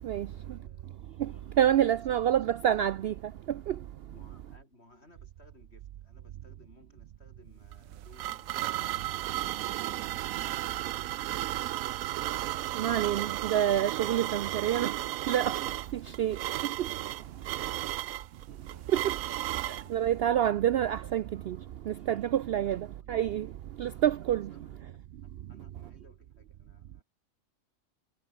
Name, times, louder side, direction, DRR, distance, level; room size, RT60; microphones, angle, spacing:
voice 1, 0.0-0.9 1.2-1.8 2.1-2.4 4.1-10.4 10.9-13.4 14.4-15.1 16.0-16.2 17.5-18.9 19.5-20.0 22.5-23.1 23.8-24.0 24.5-27.0, left 1 dB, 50° left, 8.0 m, -61 dB
voice 2, 1.6-3.1 3.5-3.8 12.7-14.9 15.3-15.6 15.9-16.4 16.8-16.9 18.9-19.1 19.6-21.6 21.9-23.5 23.8-24.5, right 10 dB, 65° right, 0.6 m, -27 dB
sound 1, 7.7-19.9, right 14 dB, 90° right, 1.0 m, -34 dB
omnidirectional pair, 1.4 m